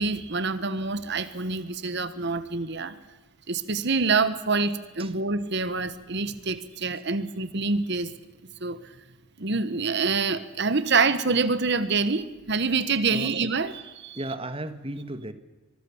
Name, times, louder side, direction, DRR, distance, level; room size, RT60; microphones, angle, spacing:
voice 1, 0.0-2.9 3.5-8.1 8.6-8.8 9.4-14.2, right 4 dB, 50° right, 13 dB, 1.2 m, -26 dB
voice 2, 14.1-15.3, right 1 dB, 25° right, 11 dB, 1.6 m, -34 dB
25.5 x 20.0 x 7.2 m, 1.2 s
head